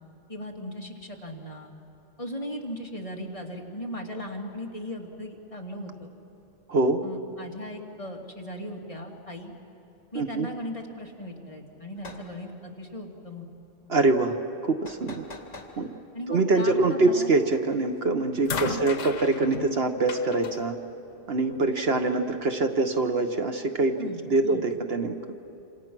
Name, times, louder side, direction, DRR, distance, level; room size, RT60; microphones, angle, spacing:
voice 1, 0.3-1.7 2.2-6.1 7.0-9.5 10.1-13.5 16.1-17.3 18.5-18.9 24.0-24.6, left 1 dB, 30° left, 0 dB, 2.2 m, -37 dB
voice 2, 6.7-7.0 10.1-10.5 13.9-14.4 14.6-15.2 15.8-15.9 16.3-20.8 21.3-24.0 24.3-25.2, right 3 dB, 55° right, 6 dB, 1.2 m, -24 dB
sound 1, 12.0-12.3 14.9-15.7, left 2 dB, 65° left, 2.6 m, -43 dB
sound 2, 17.5-17.9 18.5-21.7 22.7-22.8, left 6 dB, 85° left, 1.3 m, -36 dB
27.5 x 27.0 x 6.1 m, 2.9 s
omnidirectional pair, 1.3 m